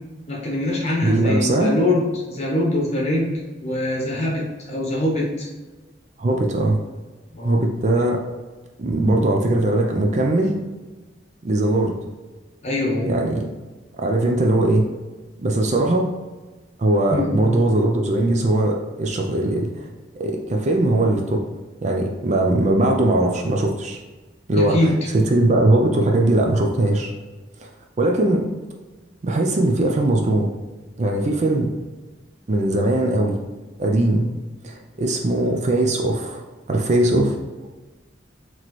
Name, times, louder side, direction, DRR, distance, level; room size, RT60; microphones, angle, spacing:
voice 1, 0.3-3.3 3.6-5.5 7.3-7.6 12.6-13.1 17.1-17.3 24.5-25.1, left 1 dB, 35° left, -3 dB, 1.0 m, -23 dB
voice 2, 1.0-1.7 6.2-6.8 7.4-8.2 8.8-10.5 11.4-12.0 13.1-13.4 14.0-14.8 15.4-16.1 16.8-19.9 20.2-21.4 21.8-24.0 24.5-24.9 25.1-27.1 27.6-27.7 28.0-28.4 29.2-30.5 31.0-31.7 32.5-33.4 33.8-34.3 34.6-36.4 36.7-37.4, right 1 dB, 35° right, 2 dB, 0.4 m, -20 dB
4.1 x 3.0 x 3.0 m, 1.2 s
head